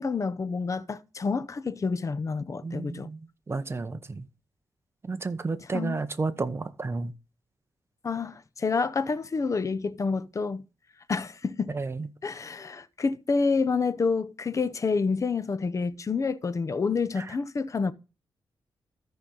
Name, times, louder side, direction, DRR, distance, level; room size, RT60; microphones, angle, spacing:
voice 1, 0.0-3.1 5.7-6.0 8.0-10.6 11.1-11.7 12.2-17.9, left 4 dB, 40° left, 0.7 m, -28 dB
voice 2, 2.6-4.3 5.0-7.1 11.7-12.1 17.2-17.4, right 3 dB, 30° right, 0.9 m, -32 dB
13.5 x 5.6 x 3.8 m
wide cardioid pair, 110°, 8 cm